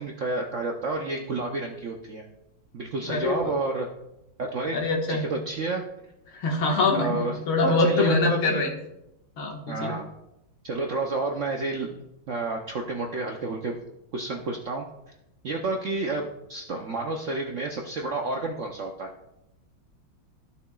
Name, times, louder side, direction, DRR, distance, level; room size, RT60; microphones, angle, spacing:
voice 1, 0.0-2.3 2.7-3.9 4.4-4.8 5.1-5.8 6.9-7.4 7.8-8.6 9.7-10.1 10.6-12.0 12.3-13.7 14.1-14.9 15.4-19.1, right 3 dB, 65° right, 1 dB, 0.7 m, -30 dB
voice 2, 3.1-3.5 4.7-5.3 6.3-8.7 9.4-9.9, left 3 dB, 85° left, 0 dB, 2.3 m, -24 dB
14.5 x 6.9 x 2.3 m, 0.88 s
omnidirectional pair, 2.2 m